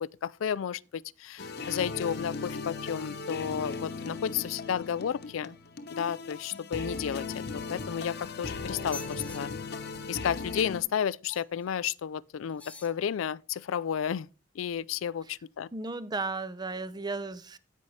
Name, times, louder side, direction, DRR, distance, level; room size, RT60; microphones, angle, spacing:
voice 1, 0.0-5.6 5.9-9.5 10.1-14.3 14.5-15.7, left 8 dB, 80° left, 0.4 m, -32 dB
sound 1, 1.4-10.8, left 4 dB, 55° left, 1.0 m, -38 dB
sound 2, 8.3-8.4 8.8-9.4 11.3-11.7 12.5-13.0 13.6-13.7, left 5 dB, 5° left, 1.0 m, -46 dB
voice 2, 15.7-17.6, right 3 dB, 20° right, 0.6 m, -34 dB
16.5 x 5.6 x 3.2 m
head